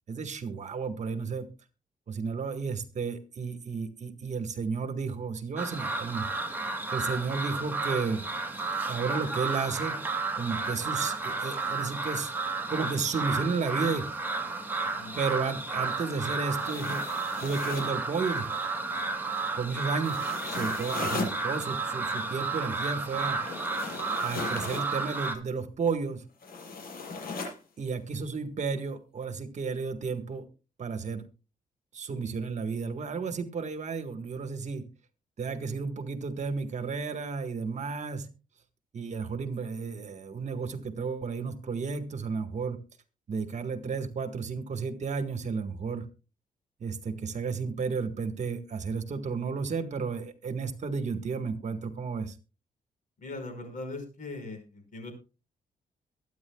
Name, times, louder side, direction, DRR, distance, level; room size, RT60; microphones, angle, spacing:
voice 1, 0.1-1.5 2.1-6.3 6.9-8.3 8.9-10.0 10.3-12.3 12.7-14.1 15.1-17.1 17.4-18.5 19.6-23.4 24.2-26.2 27.8-30.4 30.8-31.2 31.9-34.9 35.4-38.3 38.9-42.8 43.3-46.0 46.8-52.3, right 5 dB, 50° right, 9 dB, 1.6 m, -32 dB
sound 1, 5.6-25.4, right 3 dB, 15° right, 2.0 m, -32 dB
sound 2, 16.4-18.0 20.0-21.4 23.4-24.9 26.4-27.6, left 4 dB, 75° left, 6.9 m, -37 dB
voice 2, 53.2-55.1, left 2 dB, 60° left, 6 dB, 5.3 m, -40 dB
22.5 x 9.4 x 2.3 m, 0.32 s
cardioid pair, 120°, 15 cm